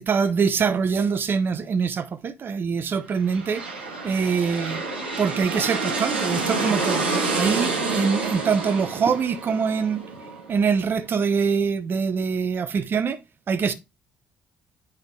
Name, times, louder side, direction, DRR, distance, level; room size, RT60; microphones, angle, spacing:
voice 1, 0.0-3.6 4.0-4.8 5.2-7.1 7.3-10.0 10.5-13.2 13.5-13.7, right 6 dB, 40° right, 0.7 m, -24 dB
sound 1, 3.2-10.8, right 3 dB, 85° right, 1.1 m, -28 dB
9.0 x 3.9 x 3.5 m
figure-of-eight pair, 45°, 5 cm